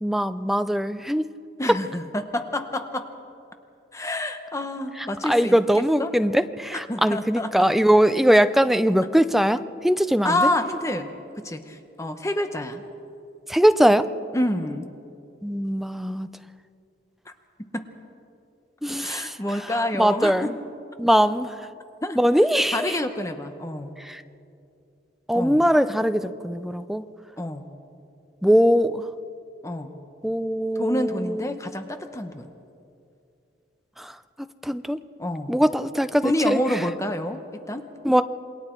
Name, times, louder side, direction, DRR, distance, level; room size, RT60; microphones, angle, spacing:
voice 1, 0.0-1.3 5.0-10.4 13.5-14.1 15.4-16.3 18.8-19.3 20.0-20.6 21.0-21.5 22.2-23.0 24.0-24.2 25.3-27.0 28.4-29.0 30.2-31.4 34.0-34.1 34.6-35.0 35.5-36.6 38.0-38.2, equal, ahead, 11 dB, 0.5 m, -21 dB
voice 2, 1.6-3.1 3.9-5.5 6.0-6.1 6.7-7.5 10.2-11.1 11.4-12.8 14.3-14.9 17.7-17.9 19.0-20.5 22.0-22.2 22.7-23.9 25.3-25.6 27.4-27.7 29.6-30.0 30.8-32.5 35.2-35.6 36.2-37.9, left 1 dB, 15° left, 7 dB, 0.9 m, -28 dB
28.0 x 21.5 x 4.5 m, 2.6 s
head